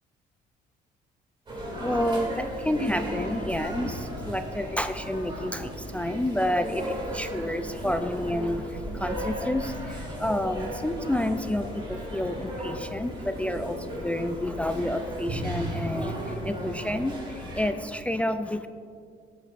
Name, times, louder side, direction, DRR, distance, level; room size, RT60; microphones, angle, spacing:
voice 1, 1.5-18.7, left 1 dB, 10° left, 8 dB, 0.3 m, -29 dB
sound 1, 1.5-17.7, equal, 30° right, 2.5 m, -35 dB
14.0 x 8.5 x 2.5 m, 2.2 s
cardioid pair, 110°, 17 cm